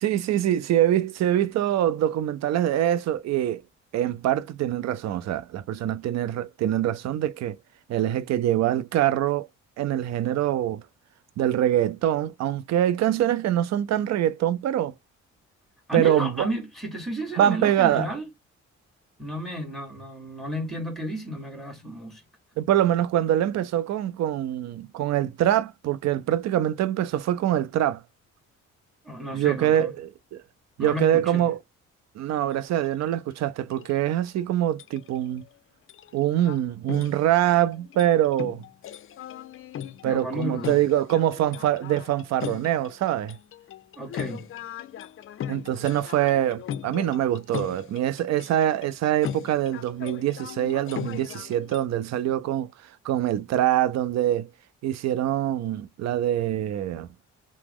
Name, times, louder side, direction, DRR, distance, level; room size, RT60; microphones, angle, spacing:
voice 1, 0.0-3.6 3.9-7.6 7.9-9.5 9.8-10.8 11.4-14.9 15.9-16.5 17.4-18.1 22.6-28.0 29.3-30.4 30.8-31.6 32.2-35.4 36.1-38.6 40.0-43.4 45.5-52.7 53.0-54.5 54.8-57.1, right 12 dB, 60° right, 0.5 m, -24 dB
voice 2, 15.9-18.3 19.2-22.2 29.0-29.9 30.8-31.5 40.0-40.8 44.0-44.5, right 1 dB, ahead, 1.5 m, -32 dB
sound 1, 32.3-32.5 32.8-33.2 33.7-34.4 34.8-35.5 35.9-36.6 36.9-51.9, left 9 dB, 45° left, 0.4 m, -39 dB
2.9 x 2.0 x 3.5 m
cardioid pair, 90°, 30 cm